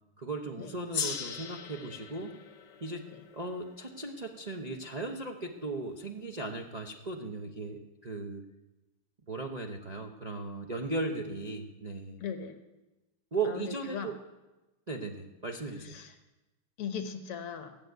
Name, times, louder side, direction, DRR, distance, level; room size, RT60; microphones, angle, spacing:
voice 1, 0.2-2.3 2.8-8.4 9.3-12.2 13.3-14.1 14.9-16.0, right 3 dB, 90° right, 1 dB, 0.3 m, -37 dB
Gong, 0.9-5.7, left 7 dB, 60° left, 1.6 m, -40 dB
voice 2, 12.2-12.6 13.5-14.1 15.8-16.1 16.8-17.8, left 7 dB, 80° left, 7 dB, 2.2 m, -38 dB
15.5 x 7.2 x 9.3 m, 1.1 s
omnidirectional pair, 2.4 m